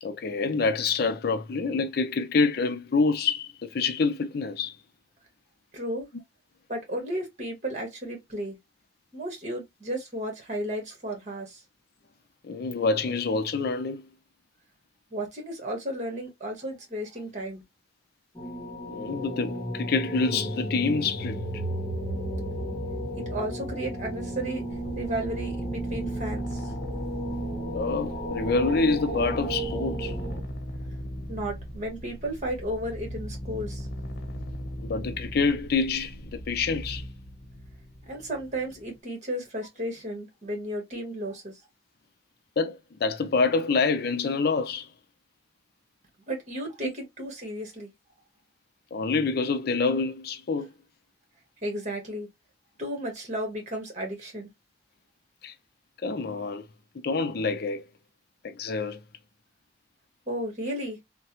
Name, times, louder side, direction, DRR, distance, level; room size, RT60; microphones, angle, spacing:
voice 1, 0.0-4.8 12.4-14.1 18.9-21.4 27.7-30.1 34.8-37.0 42.6-44.9 48.9-50.7 55.4-55.5 56.0-56.6 57.0-57.8 58.4-59.0, left 4 dB, 60° left, 0.5 m, -27 dB
voice 2, 5.7-6.1 6.7-8.6 9.1-11.6 15.1-17.6 23.2-24.6 24.9-26.7 31.3-33.8 38.1-41.5 46.3-47.9 51.6-52.3 52.8-54.5 60.3-61.0, right 1 dB, 45° right, 1.4 m, -33 dB
sound 1, 18.4-30.4, right 1 dB, 15° left, 1.1 m, -33 dB
sound 2, 24.7-39.0, equal, 85° left, 1.0 m, -38 dB
3.3 x 2.2 x 2.8 m
head